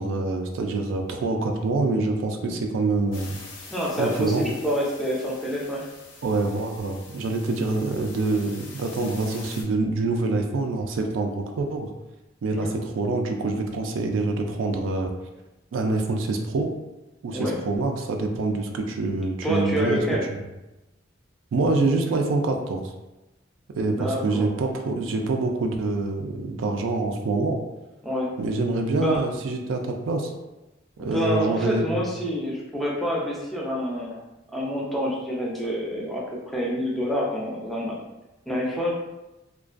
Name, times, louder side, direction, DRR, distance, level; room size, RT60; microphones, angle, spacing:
voice 1, 0.0-3.4 4.0-4.4 6.2-11.9 12.4-15.1 15.7-16.7 17.2-20.0 21.5-22.9 23.8-27.6 28.4-30.3 31.0-31.9, right 3 dB, 80° right, 3 dB, 0.3 m, -25 dB
sound 1, 3.1-9.6, left 3 dB, 85° left, 0.6 m, -45 dB
voice 2, 3.7-5.9 12.6-12.7 17.3-17.6 19.4-20.3 23.9-24.5 28.0-28.3 28.9-29.2 31.0-34.2 34.5-38.0 38.5-38.9, equal, ahead, -4 dB, 0.4 m, -27 dB
2.3 x 2.2 x 2.4 m, 1.0 s
head